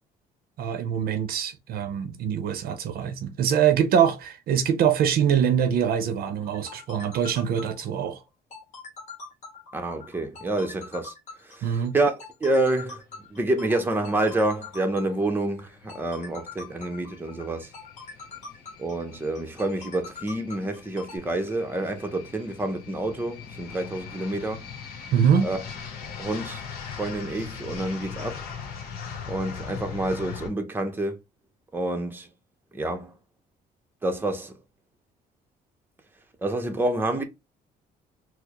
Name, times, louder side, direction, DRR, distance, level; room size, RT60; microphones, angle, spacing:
voice 1, 0.6-8.2 11.6-11.9 25.1-25.5, right 8 dB, 65° right, 0.6 m, -24 dB
sound 1, 6.4-21.2, left 4 dB, 45° left, 1.4 m, -43 dB
voice 2, 9.7-11.1 11.4-13.0 13.3-17.7 18.8-24.6 25.4-25.6 26.2-26.6 27.0-28.4 29.3-31.2 31.7-32.3 32.7-33.1 34.0-34.5 36.4-37.2, right 2 dB, 10° right, 0.7 m, -28 dB
sound 2, 14.7-30.5, left 6 dB, 60° left, 1.0 m, -40 dB
4.5 x 2.0 x 2.9 m
cardioid pair, 110°, 17 cm